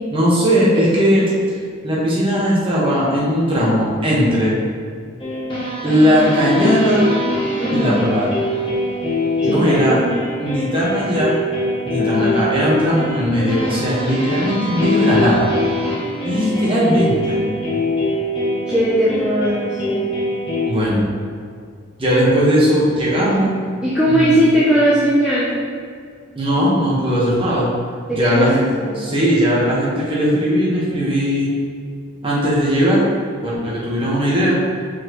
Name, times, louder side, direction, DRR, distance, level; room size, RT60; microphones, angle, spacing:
voice 1, 0.1-1.2 1.8-4.5 5.8-7.1 7.7-8.3 9.4-10.0 10.4-11.4 11.8-15.5 16.2-17.4 20.6-21.0 22.0-23.6 24.1-24.4 26.4-27.7 28.1-28.6 28.9-31.5 32.2-33.0 33.4-34.6, equal, 25° right, -7 dB, 1.3 m, -18 dB
sound 1, 5.2-20.7, left 1 dB, 25° left, 1.0 m, -23 dB
voice 2, 7.6-8.0 9.4-10.1 12.0-12.4 16.7-17.0 18.7-20.0 23.8-25.5 28.1-29.0, equal, 5° right, -9 dB, 0.6 m, -18 dB
6.9 x 4.5 x 3.1 m, 2.2 s
head